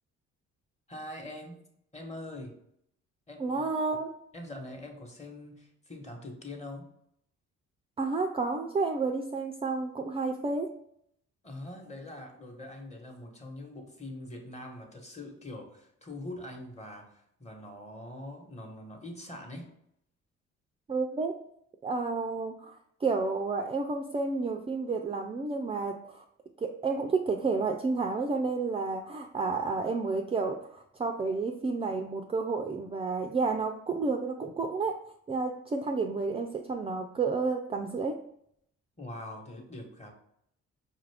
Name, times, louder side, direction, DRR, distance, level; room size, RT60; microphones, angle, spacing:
voice 1, 0.9-1.6 1.9-2.6 3.3-3.6 4.3-6.8 11.4-19.7 39.0-40.1, left 1 dB, 20° left, 2 dB, 1.1 m, -43 dB
voice 2, 3.4-4.2 8.0-10.7 20.9-21.3 21.8-26.2 26.6-35.0 35.3-38.2, right 4 dB, 20° right, 4 dB, 0.3 m, -31 dB
5.3 x 2.4 x 3.4 m, 0.72 s
cardioid pair, 90°, 30 cm